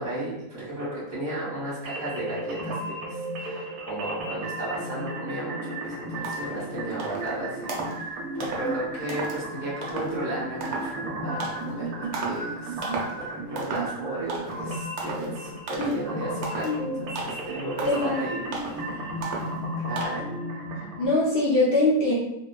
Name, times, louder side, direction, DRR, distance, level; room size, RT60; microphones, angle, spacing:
voice 1, 0.0-18.4 19.8-20.3, right 1 dB, 15° right, -8 dB, 0.8 m, -34 dB
sound 1, 1.8-21.1, right 1 dB, 85° right, 1.0 m, -34 dB
sound 2, 5.8-5.9 6.2-6.6 7.0-7.3 7.7-8.0 8.4-8.7 9.1-9.4 9.8-10.2 10.6-10.9 11.4-11.7 12.1-12.5 12.8-13.2 13.6-14.0 14.3-14.6 15.0-15.3 15.7-16.0 16.4-16.8 17.2-17.5 17.8-18.1 18.5-18.8 19.2-19.6 20.0-20.1, right 3 dB, 65° right, 0.7 m, -34 dB
voice 2, 17.8-18.2 18.9-19.1 21.0-22.1, left 2 dB, 60° left, -6 dB, 0.6 m, -23 dB
2.8 x 2.1 x 2.2 m, 0.88 s
omnidirectional pair, 1.5 m